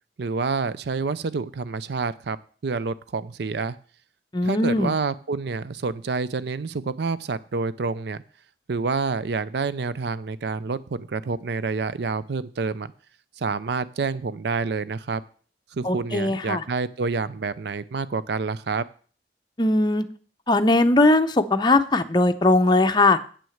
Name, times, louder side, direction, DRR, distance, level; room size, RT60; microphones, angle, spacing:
voice 1, 0.2-2.4 2.6-3.8 4.4-8.2 8.7-12.9 13.4-15.2 15.7-18.9, right 4 dB, 65° right, 16 dB, 0.5 m, -28 dB
voice 2, 4.3-4.9 15.8-16.6 19.6-20.0 20.5-23.2, left 2 dB, 25° left, 7 dB, 0.7 m, -19 dB
8.4 x 6.2 x 7.1 m, 0.42 s
head